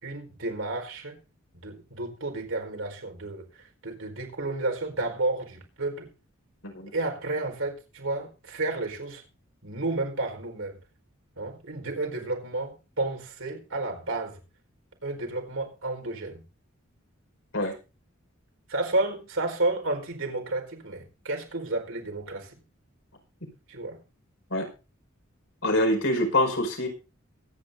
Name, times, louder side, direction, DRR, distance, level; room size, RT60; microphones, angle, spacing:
voice 1, 0.0-1.2 1.6-3.5 3.8-6.1 6.9-9.2 9.6-10.8 11.4-14.4 15.0-16.4 18.7-22.5 23.7-24.0, right 2 dB, 80° right, 4.5 m, -31 dB
voice 2, 25.6-26.9, left 1 dB, 70° left, 5.4 m, -25 dB
23.0 x 9.8 x 2.7 m
head